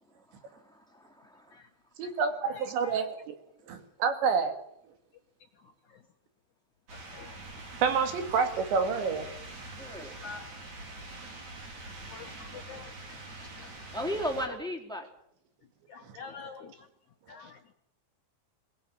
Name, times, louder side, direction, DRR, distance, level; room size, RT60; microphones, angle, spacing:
voice 1, 0.3-1.6 9.8-10.2 12.8-13.0 13.9-15.1, equal, ahead, 2.7 m, -36 dB
voice 2, 2.0-3.4 3.7-4.5 7.8-9.3, right 5 dB, 80° right, 4.5 m, -28 dB
voice 3, 2.6-3.0 7.1-7.3 10.2-10.5 12.1-12.9 13.6-13.7 15.9-16.7 17.3-17.6, left 5 dB, 60° left, 2.1 m, -45 dB
sound 1, 6.9-14.5, right 2 dB, 40° right, 5.0 m, -44 dB
23.0 x 20.0 x 8.9 m
omnidirectional pair, 5.1 m